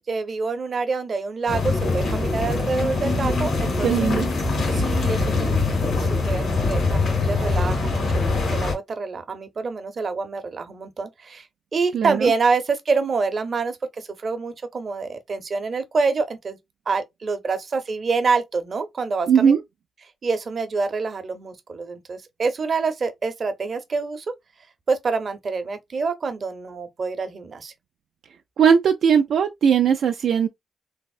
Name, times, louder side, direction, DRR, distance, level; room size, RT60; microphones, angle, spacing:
voice 1, 0.1-4.1 4.7-8.2 8.5-11.5 11.7-16.6 16.9-19.5 20.2-24.3 24.9-27.7, right 4 dB, 50° right, 0.7 m, -26 dB
sound 1, 1.5-8.7, left 3 dB, 70° left, 2.1 m, -23 dB
voice 2, 3.8-4.3 11.9-12.3 19.3-19.6 28.6-30.5, right 7 dB, 75° right, 0.3 m, -18 dB
3.4 x 2.0 x 2.3 m
cardioid pair, 65°, 0 cm